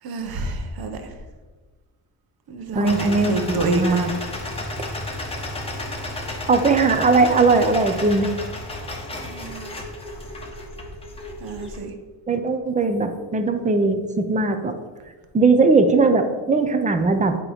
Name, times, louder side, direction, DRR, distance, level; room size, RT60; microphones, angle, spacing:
voice 1, 0.0-1.2 2.5-4.1 9.1-9.8 11.4-11.9, right 3 dB, 60° right, 6 dB, 0.9 m, -28 dB
voice 2, 2.7-4.1 6.5-8.3 12.3-14.8 15.3-17.4, right 3 dB, 20° right, 7 dB, 0.5 m, -19 dB
sound 1, 2.8-11.8, left 1 dB, 15° left, 1.0 m, -32 dB
8.5 x 3.0 x 5.0 m, 1.3 s
cardioid pair, 135°, 41 cm